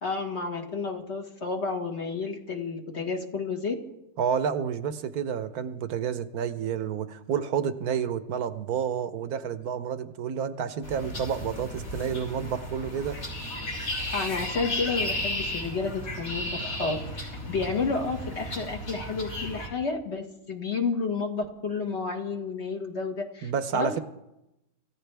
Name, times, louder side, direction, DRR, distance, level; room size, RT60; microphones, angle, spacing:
voice 1, 0.0-3.8 14.1-24.0, left 4 dB, 45° left, 2.0 m, -31 dB
voice 2, 4.2-13.2 23.4-24.0, right 7 dB, 80° right, 1.4 m, -30 dB
sound 1, 10.8-19.7, left 1 dB, 65° left, 4.7 m, -34 dB
26.5 x 15.0 x 3.4 m
omnidirectional pair, 1.6 m